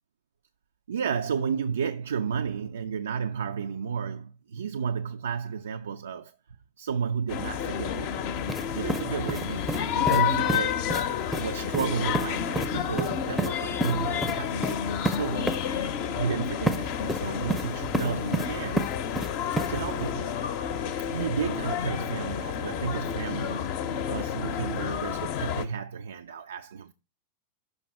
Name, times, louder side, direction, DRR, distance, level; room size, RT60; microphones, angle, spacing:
voice 1, 0.9-6.3 6.8-10.8 11.4-15.7 16.1-18.9 19.7-20.3 21.1-23.8 24.1-26.9, right 6 dB, 65° right, 0.3 m, -32 dB
sound 1, 7.3-25.7, left 8 dB, 45° left, 0.6 m, -30 dB
sound 2, 8.5-8.6 8.9-9.8 10.1-10.2 10.5-10.6 10.9-11.0 11.3-11.4 11.7-11.9 12.1-12.3 12.6-12.7 13.0-13.5 13.8-13.9 14.2-14.3 14.6-14.8 15.1-15.2 15.5-15.6 16.7-16.8 17.1-17.7 17.9-18.5 18.8-19.3 19.6-19.7, right 2 dB, ahead, 0.6 m, -28 dB
6.4 x 5.2 x 4.6 m
figure-of-eight pair, 90°, 0 cm